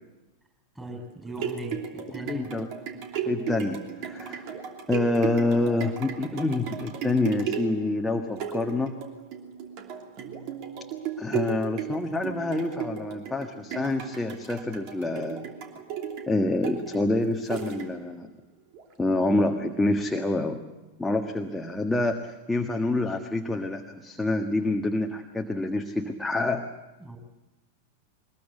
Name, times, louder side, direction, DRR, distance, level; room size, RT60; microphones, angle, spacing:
voice 1, 0.7-2.5 27.0-27.2, right 1 dB, 10° right, 3 dB, 6.4 m, -38 dB
sound 1, 1.1-18.2 18.7-18.8, right 8 dB, 45° right, 3.0 m, -35 dB
voice 2, 2.3-2.7 3.2-4.5 4.9-8.9 11.2-15.5 16.3-18.3 19.0-20.6 21.0-26.7, left 2 dB, 5° left, 3 dB, 1.5 m, -27 dB
23.0 x 20.5 x 8.3 m, 1.1 s
figure-of-eight pair, 90°, 0 cm